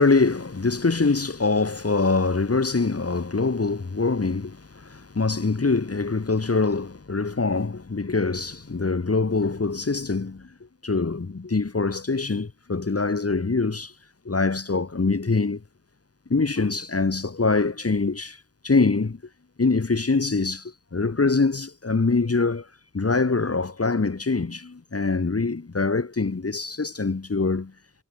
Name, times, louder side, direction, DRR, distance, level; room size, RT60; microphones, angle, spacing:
voice 1, 0.0-10.5 10.8-13.9 14.2-15.6 16.3-19.2 19.6-22.7 22.9-27.7, left 3 dB, 40° left, 3.0 m, -24 dB
wide cardioid pair, 90°, 37 cm